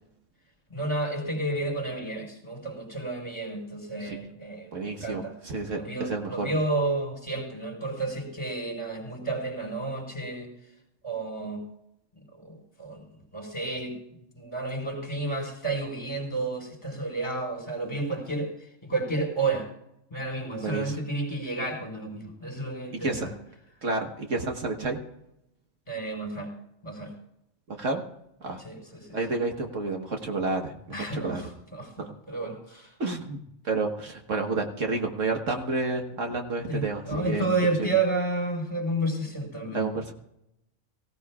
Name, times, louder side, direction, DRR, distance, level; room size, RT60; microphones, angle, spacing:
voice 1, 0.7-5.3 5.7-10.5 11.0-11.6 12.1-13.1 13.3-14.0 14.4-19.7 20.1-23.3 25.9-26.5 26.8-27.1 28.6-29.2 30.9-32.9 36.7-39.8, right 2 dB, 20° left, 0 dB, 4.8 m, -31 dB
voice 2, 4.7-6.5 20.6-21.0 23.0-23.3 23.8-25.0 27.7-28.0 28.4-28.6 29.1-31.4 32.0-32.1 32.4-32.5 33.0-33.4 33.6-37.5 37.8-37.9 39.7-40.1, right 3 dB, 65° right, 3 dB, 1.7 m, -30 dB
23.5 x 16.5 x 2.4 m, 0.83 s
omnidirectional pair, 1.4 m